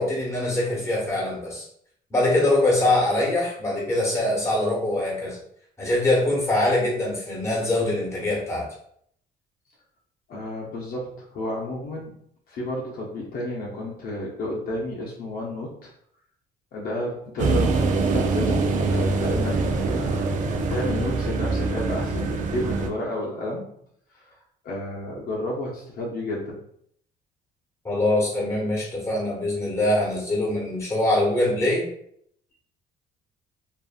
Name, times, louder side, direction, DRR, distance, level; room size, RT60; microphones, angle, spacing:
voice 1, 0.0-1.6 2.1-5.4 5.8-8.7 27.8-31.9, left 1 dB, 15° left, -3 dB, 1.2 m, -23 dB
voice 2, 10.3-12.2 12.5-15.9 16.7-20.2 20.7-23.7 24.1-24.4 24.6-26.6, left 1 dB, 60° left, -3 dB, 0.7 m, -31 dB
sound 1, 17.4-22.9, right 3 dB, 50° right, 0.4 m, -24 dB
2.6 x 2.5 x 2.4 m, 0.68 s
cardioid pair, 110°, 17 cm